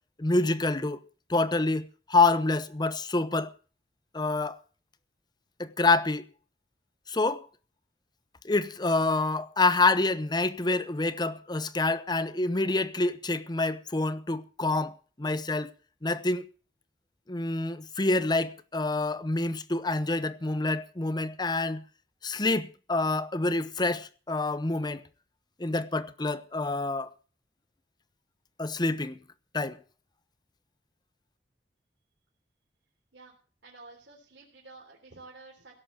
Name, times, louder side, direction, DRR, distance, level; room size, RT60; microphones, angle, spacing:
voice 1, 0.2-1.0 1.3-3.5 4.1-4.6 5.6-6.2 7.1-7.5 8.4-15.7 16.0-16.5 17.3-21.8 22.2-25.0 25.6-27.1 28.6-29.2 29.5-29.8, left 3 dB, 25° left, 0.8 m, -27 dB
voice 2, 33.6-35.8, right 3 dB, 90° right, 3.6 m, -50 dB
17.0 x 6.6 x 8.7 m
head